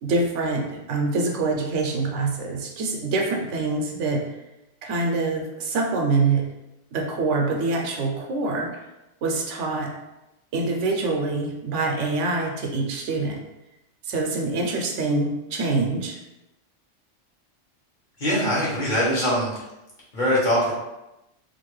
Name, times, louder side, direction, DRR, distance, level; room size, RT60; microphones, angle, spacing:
voice 1, 0.0-4.3 4.8-6.5 6.9-8.8 9.2-9.9 10.5-13.4 14.0-16.2, right 3 dB, 85° right, 1 dB, 0.9 m, -25 dB
voice 2, 18.2-19.5 20.1-20.7, equal, 45° left, -8 dB, 1.2 m, -22 dB
2.7 x 2.5 x 3.1 m, 0.95 s
omnidirectional pair, 1.2 m